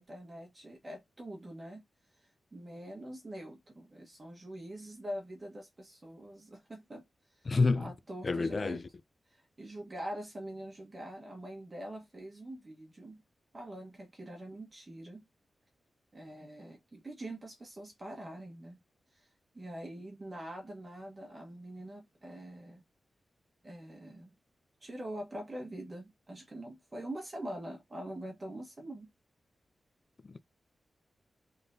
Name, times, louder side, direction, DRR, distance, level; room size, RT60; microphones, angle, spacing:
voice 1, 0.0-1.8 2.1-7.0 7.3-8.8 9.3-13.2 13.5-15.2 16.1-18.8 19.1-19.3 19.5-22.8 23.6-24.4 24.8-29.1, right 1 dB, 25° right, 1.2 m, -44 dB
voice 2, 7.5-7.9 8.2-8.8 30.3-30.4, left 3 dB, 35° left, 0.3 m, -28 dB
3.6 x 3.6 x 2.6 m
wide cardioid pair, 145°, 0 cm